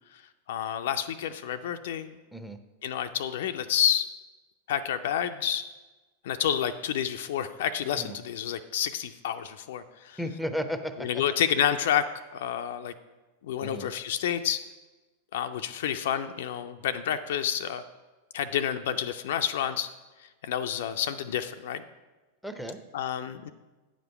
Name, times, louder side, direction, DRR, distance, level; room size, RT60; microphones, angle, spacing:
voice 1, 0.5-2.2 2.8-4.1 4.7-5.6 6.2-10.2 11.0-12.1 12.3-12.9 13.4-14.6 15.3-17.8 18.3-19.9 20.4-21.8 22.9-23.5, left 9 dB, 55° left, 9 dB, 0.4 m, -29 dB
voice 2, 10.2-11.2 13.6-13.9 22.4-22.8, equal, ahead, 10 dB, 0.6 m, -34 dB
9.2 x 5.1 x 5.5 m, 1.2 s
figure-of-eight pair, 90°, 0 cm